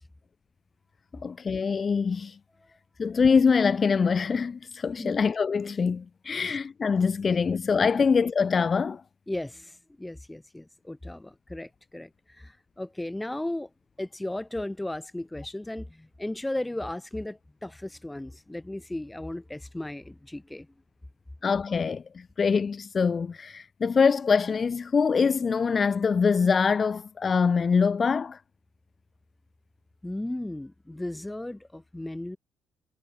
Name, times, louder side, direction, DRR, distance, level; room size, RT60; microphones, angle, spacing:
voice 1, 1.1-2.4 3.0-9.0 21.4-28.4, left 5 dB, 35° left, 0.8 m, -24 dB
voice 2, 9.3-13.7 14.0-20.7 30.0-32.4, left 1 dB, 10° left, 1.3 m, -35 dB
cardioid pair, 125°, 0 cm